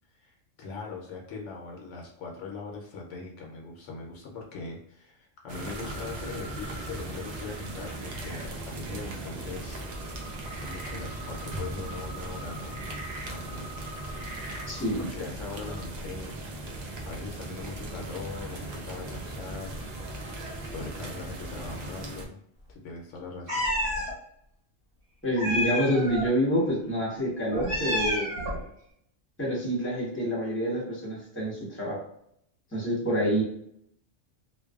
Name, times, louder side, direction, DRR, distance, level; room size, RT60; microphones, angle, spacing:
voice 1, 0.2-9.8 10.6-12.9 13.3-13.7 15.0-16.3 17.1-19.8 20.7-22.4 22.7-23.6, left 3 dB, 75° left, 0 dB, 0.9 m, -40 dB
sound 1, 5.5-22.3, right 1 dB, 80° right, 0.3 m, -38 dB
voice 2, 14.7-15.1 25.2-28.3 29.4-32.0 32.7-33.4, equal, 10° left, -6 dB, 0.8 m, -27 dB
Meow, 23.5-24.1 25.4-26.3 27.5-28.6, left 1 dB, 50° right, 1.1 m, -29 dB
2.5 x 2.2 x 2.3 m, 0.70 s
omnidirectional pair, 1.3 m